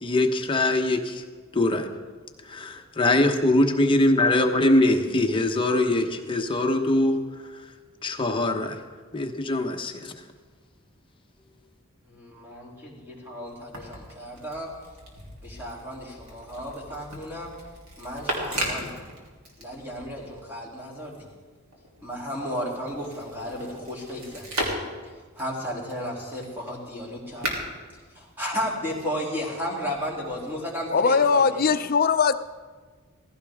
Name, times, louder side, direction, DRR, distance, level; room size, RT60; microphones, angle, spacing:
voice 1, 0.0-1.2 1.5-1.9 2.5-7.1 8.0-8.8 9.1-10.1, left 1 dB, 25° left, 0.9 m, -22 dB
voice 2, 12.1-14.7 15.4-17.5 18.0-19.0 19.6-21.2 22.0-24.4 25.4-27.5 28.1-31.7, equal, 10° right, 2.9 m, -34 dB
sound 1, 13.5-20.4 20.8-28.9 29.8-30.6, right 1 dB, 85° right, 2.9 m, -37 dB
voice 3, 30.9-32.3, left 5 dB, 45° left, 0.5 m, -20 dB
17.0 x 15.5 x 3.6 m
head